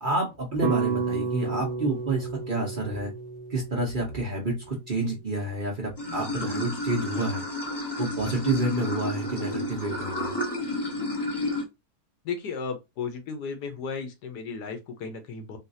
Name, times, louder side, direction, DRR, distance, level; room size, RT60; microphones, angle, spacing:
voice 1, 0.0-3.1 3.5-7.4 8.0-10.4, right 2 dB, 40° right, 0.8 m, -29 dB
sound 1, 0.6-4.9, right 5 dB, 75° right, 1.1 m, -32 dB
Water / Sink (filling or washing), 6.0-11.6, left 1 dB, 35° left, 0.4 m, -31 dB
voice 2, 12.2-15.6, left 5 dB, 80° left, 1.4 m, -34 dB
4.0 x 2.4 x 2.6 m
omnidirectional pair, 1.8 m